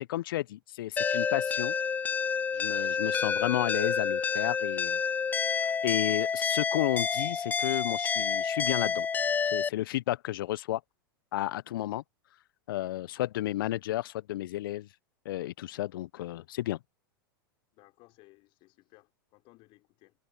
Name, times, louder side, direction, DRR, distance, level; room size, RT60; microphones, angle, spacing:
voice 1, 0.0-1.7 2.5-5.0 5.5-9.1 9.4-10.8 11.3-12.0 12.7-14.9 15.2-16.8, left 15 dB, 65° left, 0.8 m, -32 dB
sound 1, 1.0-9.7, left 6 dB, 15° left, 0.3 m, -29 dB
voice 2, 17.7-20.1, left 21 dB, 45° left, 4.1 m, -60 dB
hypercardioid pair, 95°, 12 cm